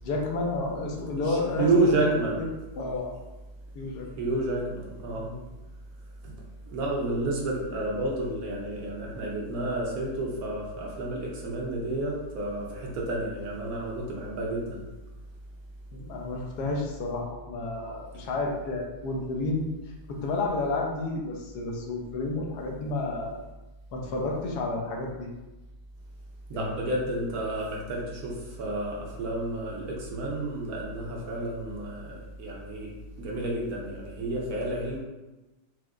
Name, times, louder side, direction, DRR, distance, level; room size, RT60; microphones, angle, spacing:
voice 1, 0.0-2.5 2.7-3.1 3.7-4.1 5.2-5.5 15.9-19.7 20.1-23.4 23.9-25.3 26.5-26.8, left 2 dB, 75° left, -1 dB, 1.1 m, -31 dB
voice 2, 1.6-2.4 4.2-5.3 6.2-6.3 6.7-14.8 26.5-32.9 33.2-35.0, right 2 dB, 70° right, -3 dB, 1.1 m, -30 dB
4.5 x 2.1 x 2.4 m, 1.1 s
omnidirectional pair, 1.8 m